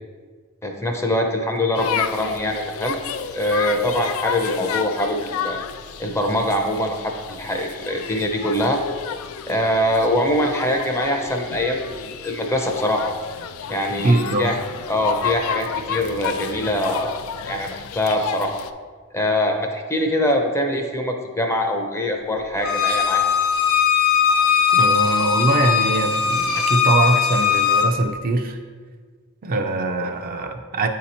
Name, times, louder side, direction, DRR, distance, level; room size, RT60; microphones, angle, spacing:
voice 1, 0.6-3.0 3.3-5.6 6.0-8.8 9.5-13.1 13.7-14.6 14.9-17.2 17.4-18.6 19.1-23.2, left 1 dB, 15° left, 3 dB, 0.5 m, -23 dB
sound 1, 1.7-18.7, left 7 dB, 70° left, 0.3 m, -31 dB
voice 2, 14.0-14.5 24.7-28.6 29.4-30.9, right 2 dB, 45° right, 4 dB, 0.4 m, -22 dB
Bowed string instrument, 22.6-27.9, left 7 dB, 85° left, 0.7 m, -19 dB
8.3 x 2.8 x 4.2 m, 1.6 s
head